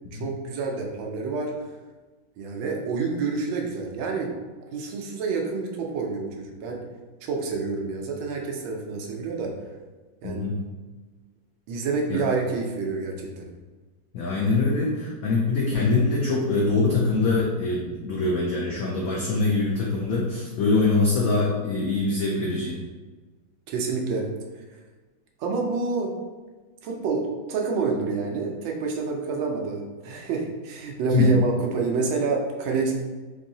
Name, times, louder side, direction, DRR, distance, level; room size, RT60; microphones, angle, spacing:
voice 1, 0.1-1.5 2.4-4.3 4.7-6.8 7.2-9.5 10.2-10.5 11.7-13.5 23.7-24.3 25.4-26.1 26.8-27.2 27.5-32.9, right 4 dB, 80° right, 1 dB, 1.4 m, -28 dB
voice 2, 10.2-10.6 12.1-12.2 14.1-22.8 31.1-31.3, left 3 dB, 85° left, -3 dB, 0.7 m, -23 dB
4.5 x 2.7 x 2.6 m, 1.3 s
omnidirectional pair, 2.1 m